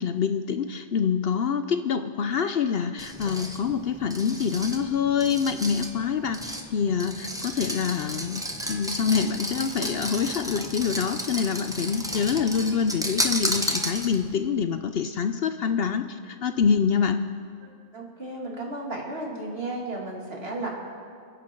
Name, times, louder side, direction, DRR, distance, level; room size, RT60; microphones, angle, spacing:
voice 1, 0.0-17.2, left 6 dB, 60° left, 9 dB, 0.8 m, -26 dB
sound 1, 3.0-14.4, equal, 5° right, 1.0 m, -33 dB
voice 2, 17.6-20.7, right 2 dB, 55° right, -1 dB, 2.8 m, -34 dB
29.0 x 10.5 x 4.5 m, 2.3 s
omnidirectional pair, 1.2 m